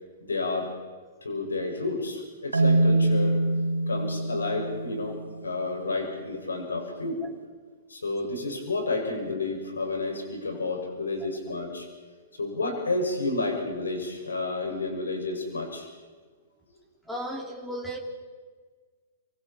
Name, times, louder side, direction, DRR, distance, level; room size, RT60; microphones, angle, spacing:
voice 1, 0.2-0.7 1.2-3.4 3.9-5.2 5.4-7.2 7.9-11.8 12.4-15.9, left 3 dB, 80° left, 2 dB, 6.2 m, -30 dB
Marimba xylophone, 2.5-5.5, right 2 dB, 85° right, 1.6 m, -24 dB
voice 2, 17.0-18.0, right 1 dB, 5° left, 2 dB, 3.2 m, -35 dB
28.0 x 25.0 x 4.4 m, 1.5 s
figure-of-eight pair, 110°, 0 cm